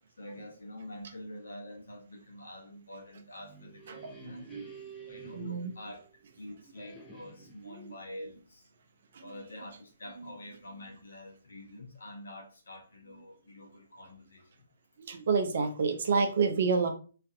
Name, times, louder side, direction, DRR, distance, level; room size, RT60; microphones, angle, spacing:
voice 1, 0.2-4.5 5.1-6.0 6.4-8.6 9.2-14.5, left 1 dB, 65° left, 1 dB, 0.8 m, -46 dB
sound 1, 3.3-6.3 6.7-7.7, right 5 dB, 10° left, 0.5 m, -50 dB
voice 2, 3.9-4.9 5.3-5.7 7.6-7.9 9.1-9.3 10.2-10.3 15.0-16.9, right 5 dB, 50° right, 5 dB, 0.5 m, -30 dB
2.5 x 2.4 x 2.4 m, 0.39 s
figure-of-eight pair, 130°, 0 cm